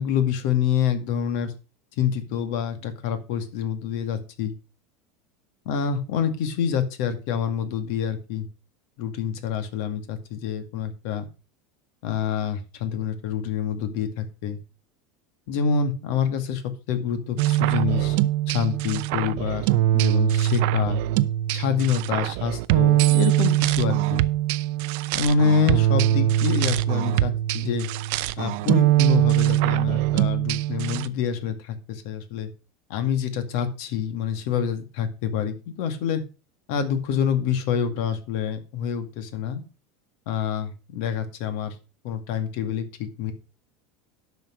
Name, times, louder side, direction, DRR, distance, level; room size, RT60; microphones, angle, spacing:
voice 1, 0.0-1.5 2.0-4.5 5.7-8.5 9.0-11.3 12.0-14.6 15.5-18.2 18.5-21.0 21.5-24.3 25.1-27.9 28.4-32.5 32.9-36.2 36.7-39.6 40.3-41.7 42.0-43.3, left 7 dB, 65° left, 9 dB, 2.1 m, -27 dB
sound 1, 17.4-31.1, right 14 dB, 65° right, 0.6 m, -22 dB
10.5 x 6.1 x 6.2 m, 0.33 s
supercardioid pair, 150°, 0 cm